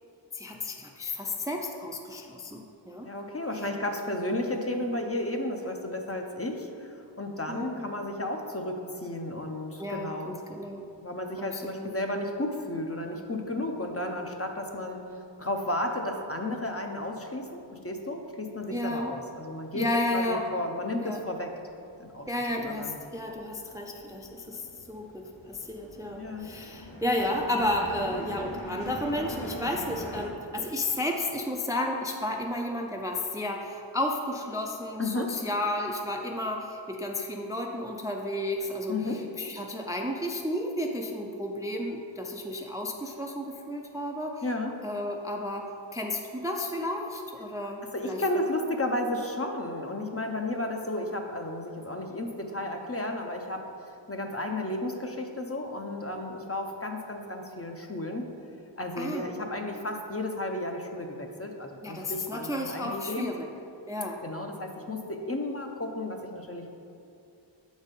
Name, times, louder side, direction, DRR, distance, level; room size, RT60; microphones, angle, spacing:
voice 1, 0.3-3.1 7.5-7.8 9.8-10.8 11.4-11.9 18.7-19.1 19.7-20.5 21.0-21.2 22.3-44.4 44.8-45.7 45.9-48.5 59.0-59.3 61.8-63.5 63.9-64.2, left 1 dB, 10° right, 1 dB, 0.4 m, -32 dB
voice 2, 3.0-10.4 11.0-15.0 15.4-19.9 20.1-21.5 22.0-22.3 22.6-23.0 26.2-26.5 35.0-35.3 38.9-39.2 44.4-44.8 47.9-53.6 54.1-58.3 58.8-63.3 64.2-66.7, left 1 dB, 30° left, 3 dB, 0.6 m, -33 dB
sound 1, 17.4-17.5 17.7-18.9 19.2-30.3, left 1 dB, 70° left, 1.1 m, -43 dB
7.1 x 4.1 x 5.2 m, 2.6 s
wide cardioid pair, 55°, 47 cm